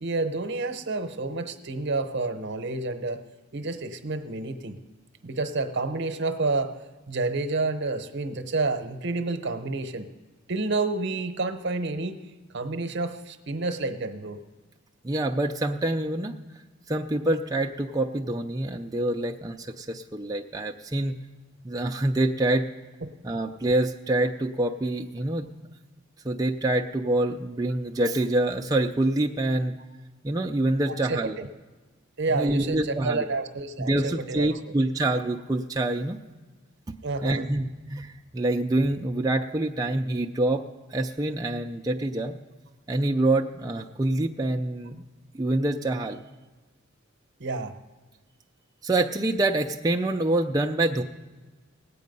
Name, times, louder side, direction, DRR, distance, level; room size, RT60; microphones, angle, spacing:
voice 1, 0.0-3.2 3.5-4.8 5.2-6.8 7.1-10.1 10.5-12.2 12.5-14.4 23.0-23.1 30.9-31.5 32.2-34.6 37.0-37.5 47.4-47.7, right 3 dB, 60° right, 9 dB, 0.9 m, -29 dB
voice 2, 15.0-16.3 16.9-21.2 21.6-22.7 23.2-25.5 26.2-29.7 30.2-31.4 32.3-33.2 33.8-36.2 37.2-40.6 40.9-42.3 42.9-45.0 45.3-46.2 48.8-51.0, right 1 dB, 20° right, 2 dB, 0.4 m, -26 dB
18.5 x 8.5 x 5.3 m, 1.3 s
head